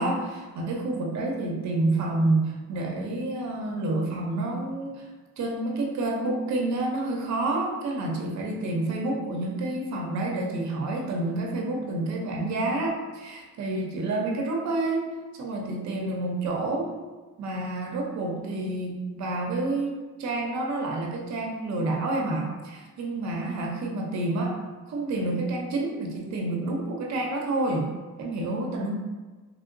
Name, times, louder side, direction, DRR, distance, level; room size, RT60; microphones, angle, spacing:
voice 1, 0.0-5.0 5.4-15.1 15.3-16.9 17.4-24.6 24.9-27.9 28.2-28.9, right 2 dB, 65° right, 0 dB, 0.7 m, -29 dB
3.1 x 2.7 x 2.5 m, 1.3 s
cardioid pair, 90°, 30 cm